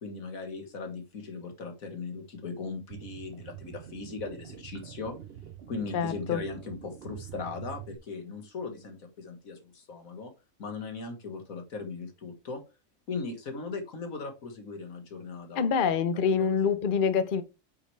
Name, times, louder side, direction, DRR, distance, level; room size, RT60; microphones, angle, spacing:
voice 1, 0.0-5.2 5.7-10.3 10.6-12.6 13.1-15.7 16.4-16.6, left 4 dB, 80° left, 2.1 m, -38 dB
sound 1, 2.9-8.0, right 10 dB, 55° right, 0.8 m, -45 dB
voice 2, 5.9-6.4 15.6-17.4, left 6 dB, 45° left, 0.8 m, -26 dB
8.5 x 6.3 x 3.3 m
omnidirectional pair, 1.4 m